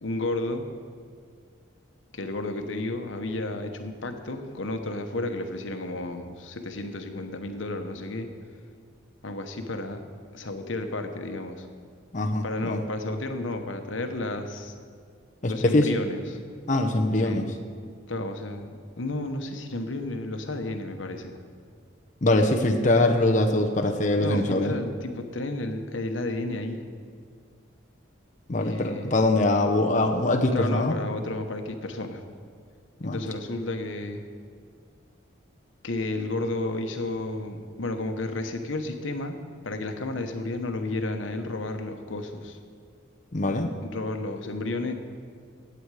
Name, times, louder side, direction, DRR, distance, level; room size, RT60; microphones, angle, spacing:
voice 1, 0.0-0.7 2.1-8.3 9.2-10.0 10.3-11.7 12.4-14.7 15.5-16.4 17.2-17.5 18.1-21.3 24.2-26.8 28.6-29.1 30.5-32.2 33.0-34.2 35.8-39.4 39.6-42.6 43.8-44.9, left 2 dB, 80° left, 6 dB, 1.1 m, -32 dB
voice 2, 12.1-12.8 15.4-15.9 16.7-17.5 22.2-24.8 28.5-31.0 33.0-33.2 43.3-43.7, left 2 dB, 40° left, 3 dB, 0.8 m, -23 dB
17.0 x 8.0 x 4.9 m, 2.1 s
head